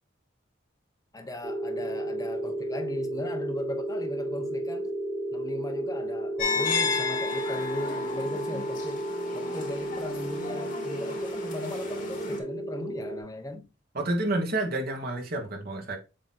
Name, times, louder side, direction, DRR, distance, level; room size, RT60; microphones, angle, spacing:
voice 1, 1.1-4.9 5.3-9.1 9.3-13.7, left 1 dB, 15° left, 1.0 m, -38 dB
sound 1, 1.4-13.2, right 1 dB, 30° right, 1.4 m, -33 dB
sound 2, 6.4-12.4, left 4 dB, 40° left, 2.6 m, -33 dB
voice 2, 13.9-16.0, right 2 dB, 45° right, 1.4 m, -29 dB
7.7 x 3.0 x 4.3 m
head